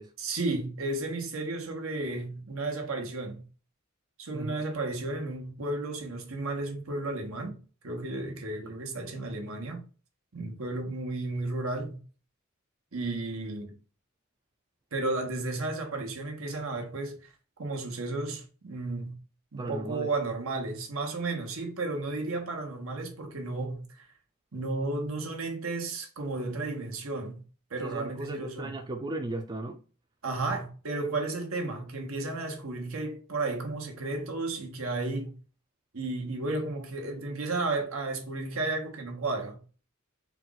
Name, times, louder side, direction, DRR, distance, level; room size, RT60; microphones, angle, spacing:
voice 1, 0.2-3.5 4.2-9.8 10.3-12.0 12.9-13.8 14.9-17.3 17.6-19.2 19.5-24.1 24.5-27.4 27.7-28.8 30.2-35.4 35.9-39.6, right 2 dB, 75° right, 1.1 m, -33 dB
voice 2, 4.3-4.6 8.6-8.8 19.6-20.1 27.8-29.8, right 2 dB, 20° right, 0.4 m, -36 dB
4.2 x 2.4 x 3.9 m
head